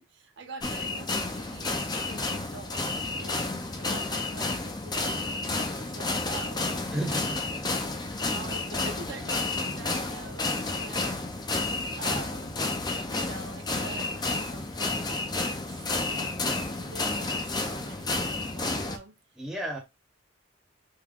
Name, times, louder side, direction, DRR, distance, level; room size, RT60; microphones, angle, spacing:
voice 1, 0.0-7.3 7.8-11.7 12.0-12.8 13.1-19.4, right 3 dB, 60° right, 0.7 m, -46 dB
sound 1, 0.6-19.0, left 3 dB, 20° left, 0.5 m, -31 dB
voice 2, 6.9-7.4 19.4-19.8, right 1 dB, ahead, 1.0 m, -32 dB
3.7 x 2.2 x 3.6 m
head